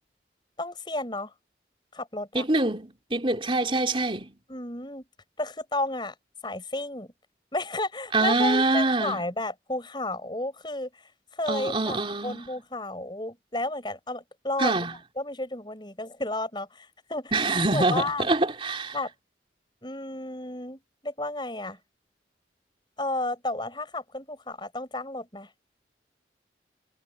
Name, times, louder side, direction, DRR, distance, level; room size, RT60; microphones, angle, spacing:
voice 1, 0.6-1.3 1.9-2.4 4.5-5.0 5.4-6.1 6.4-7.1 7.5-10.9 11.3-17.3 17.7-18.3 18.9-19.1 19.8-21.8 23.0-25.5, left 2 dB, 25° left, 6.6 m, -32 dB
voice 2, 2.3-4.4 8.1-9.2 11.5-12.4 14.6-14.9 17.3-19.0, right 2 dB, 30° right, 3.9 m, -25 dB
head